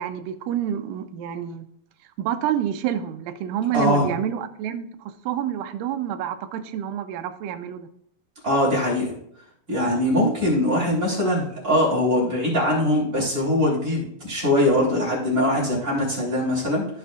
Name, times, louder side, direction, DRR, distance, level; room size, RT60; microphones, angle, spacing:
voice 1, 0.0-1.6 2.2-7.9, right 10 dB, 80° right, 8 dB, 2.1 m, -28 dB
voice 2, 3.7-4.0 8.4-9.1 9.7-17.0, left 1 dB, 25° right, -6 dB, 3.8 m, -22 dB
15.0 x 5.9 x 2.4 m, 0.71 s
omnidirectional pair, 4.4 m